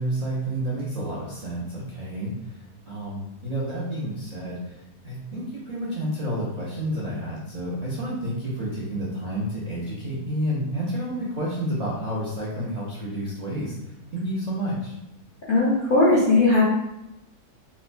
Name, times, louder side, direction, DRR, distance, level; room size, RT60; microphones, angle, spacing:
voice 1, 0.0-13.7 14.1-15.0, right 1 dB, 70° right, -7 dB, 0.3 m, -30 dB
voice 2, 15.5-16.6, left 2 dB, 60° left, -7 dB, 0.5 m, -18 dB
4.1 x 2.1 x 2.5 m, 0.91 s
omnidirectional pair, 1.7 m